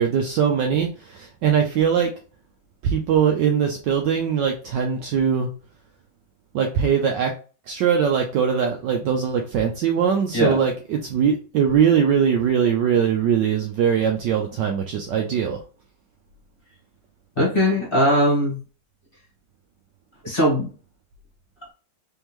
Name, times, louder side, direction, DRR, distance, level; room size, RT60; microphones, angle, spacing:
voice 1, 0.0-2.2 2.8-5.5 6.5-7.3 7.7-15.6, right 7 dB, 70° right, 3 dB, 1.1 m, -21 dB
voice 2, 17.4-18.6 20.2-20.7, equal, 30° left, -4 dB, 1.6 m, -19 dB
3.6 x 3.5 x 3.0 m, 0.37 s
omnidirectional pair, 2.3 m